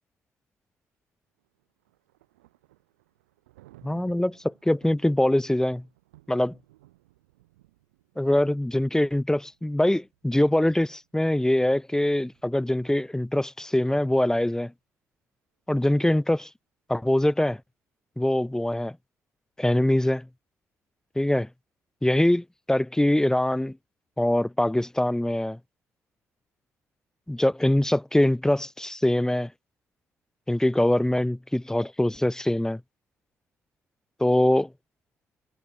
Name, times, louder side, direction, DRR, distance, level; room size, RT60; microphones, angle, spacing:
Thunder, 1.4-13.2, right 18 dB, 80° right, 7.7 m, -60 dB
voice 1, 3.8-5.8 6.3-6.6 8.2-14.7 15.7-16.5 16.9-17.6 18.2-19.0 19.6-20.3 21.2-21.5 22.0-23.8 24.2-25.6 27.3-29.5 30.5-32.8 34.2-34.7, left 1 dB, 5° left, 0.7 m, -23 dB
figure-of-eight pair, 40°, 8 cm